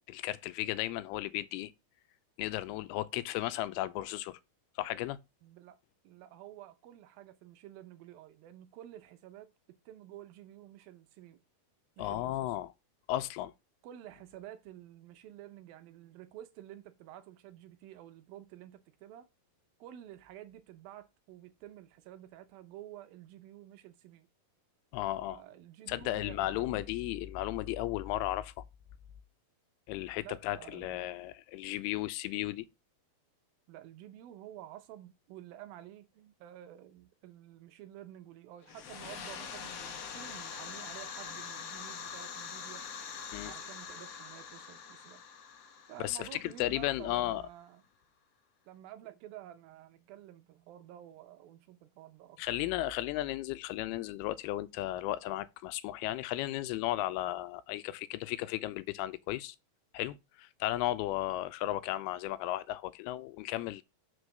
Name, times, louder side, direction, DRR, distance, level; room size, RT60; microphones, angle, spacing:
voice 1, 0.1-1.7 2.4-4.4 4.8-5.2 12.0-12.7 13.1-13.5 24.9-25.4 25.9-28.5 29.9-32.7 43.3-43.5 46.0-47.4 52.4-59.6 59.9-63.8, left 15 dB, 85° left, 2.5 m, -35 dB
voice 2, 5.4-5.8 6.0-11.4 12.0-12.7 13.8-19.3 19.8-24.3 25.2-26.9 30.2-31.2 33.7-42.8 43.4-45.2 45.9-47.8 48.7-52.7, right 12 dB, 80° right, 2.4 m, -51 dB
sound 1, 38.6-47.2, left 6 dB, 65° left, 1.6 m, -44 dB
6.1 x 4.8 x 6.5 m
omnidirectional pair, 4.5 m